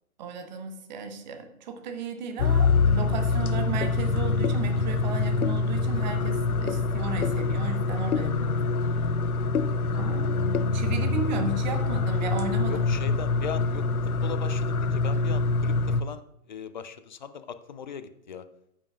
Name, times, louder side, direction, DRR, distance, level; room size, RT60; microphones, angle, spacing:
voice 1, 0.2-8.6 9.9-10.4 10.7-12.8, right 4 dB, 30° right, 5 dB, 1.2 m, -34 dB
sound 1, 2.4-16.0, left 4 dB, 75° left, 0.7 m, -25 dB
voice 2, 12.7-13.9 14.2-16.2 16.5-18.4, left 7 dB, 35° left, 12 dB, 0.5 m, -38 dB
14.5 x 7.3 x 2.4 m, 0.79 s
figure-of-eight pair, 130°, 44 cm